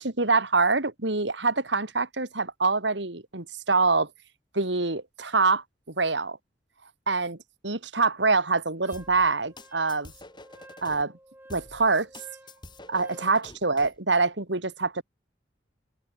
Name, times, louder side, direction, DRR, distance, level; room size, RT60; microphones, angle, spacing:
voice 1, 0.0-4.1 4.5-6.4 7.1-7.4 7.6-10.1 10.8-11.1 11.5-12.1 12.9-15.0, right 3 dB, 75° right, 2.8 m, -25 dB
Wind instrument woodwind instrument, 8.8-13.4, right 1 dB, 10° right, 5.3 m, -52 dB
sound 1, 8.9-11.0 11.5-14.0, left 2 dB, 25° left, 6.4 m, -47 dB
open air
head